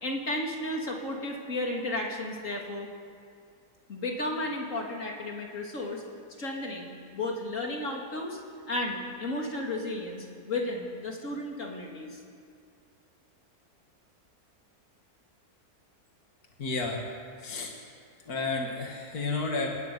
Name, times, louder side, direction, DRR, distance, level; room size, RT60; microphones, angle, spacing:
voice 1, 0.0-2.9 3.9-6.0 6.4-8.4 8.7-12.2, left 1 dB, 50° left, 0 dB, 3.5 m, -33 dB
voice 2, 16.6-17.1 17.4-17.8 18.2-19.8, left 3 dB, 70° left, 0 dB, 2.6 m, -31 dB
30.0 x 12.5 x 9.6 m, 2.4 s
omnidirectional pair, 1.7 m